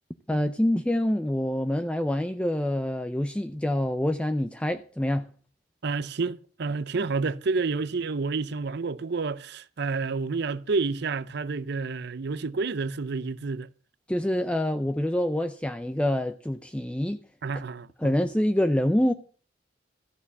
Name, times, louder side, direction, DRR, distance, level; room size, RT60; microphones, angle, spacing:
voice 1, 0.3-5.3 14.1-17.2 18.0-19.1, left 1 dB, 5° left, 0.5 m, -26 dB
voice 2, 5.8-13.7 17.4-18.1, right 4 dB, 60° right, 0.6 m, -29 dB
14.0 x 6.9 x 7.2 m
head